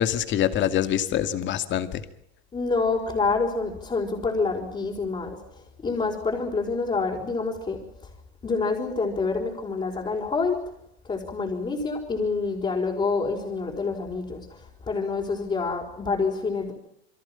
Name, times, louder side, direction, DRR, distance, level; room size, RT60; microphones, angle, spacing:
voice 1, 0.0-2.0, left 10 dB, 35° left, 10 dB, 2.3 m, -25 dB
voice 2, 2.5-5.4 5.8-7.8 8.4-10.6 11.0-14.6 14.9-16.7, left 4 dB, 20° left, -2 dB, 4.9 m, -27 dB
29.5 x 22.5 x 5.9 m, 0.76 s
supercardioid pair, 130°, 32 cm